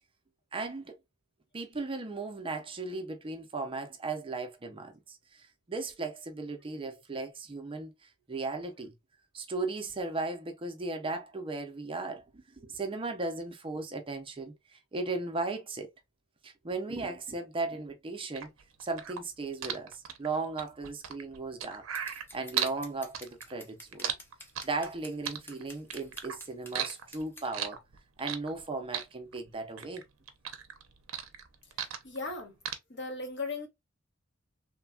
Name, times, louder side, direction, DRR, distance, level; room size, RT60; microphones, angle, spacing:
voice 1, 0.5-0.9 1.5-8.9 9.3-15.9 16.4-18.5 18.8-21.8 22.3-24.1 24.6-27.8 28.2-30.0, right 3 dB, 25° right, 0.5 m, -36 dB
sound 1, 18.3-22.8 23.1-24.9 25.3-26.4 26.7-28.6 28.9-30.0 30.3-32.3 32.6-32.7, right 9 dB, 75° right, 0.6 m, -35 dB
Scissors, 21.9-27.5, left 1 dB, 10° left, 0.7 m, -50 dB
voice 2, 32.0-32.5 32.9-33.7, left 3 dB, 60° left, 1.1 m, -36 dB
3.1 x 2.2 x 2.3 m
head